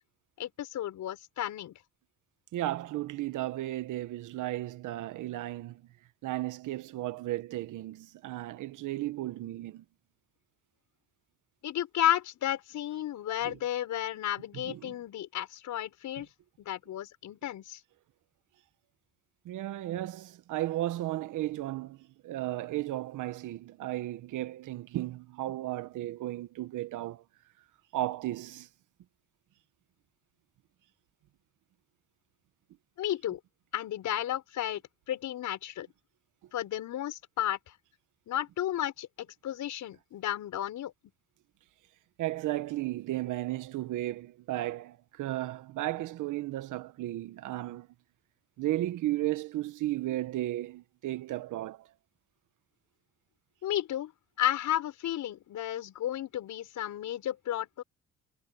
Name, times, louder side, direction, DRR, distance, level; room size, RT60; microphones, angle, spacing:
voice 1, 0.4-1.7 11.6-16.3 16.6-17.8 33.0-33.4 33.7-34.8 35.1-35.9 36.5-37.6 38.3-40.9 53.6-54.1 54.4-57.8, left 12 dB, 75° left, 6.6 m, -33 dB
voice 2, 2.5-5.8 6.2-9.8 13.4-13.5 14.6-14.9 19.4-22.0 22.2-27.2 27.9-28.7 42.2-47.9 48.6-51.8, right 15 dB, 85° right, 1.4 m, -34 dB
cardioid pair, 90°, 30 cm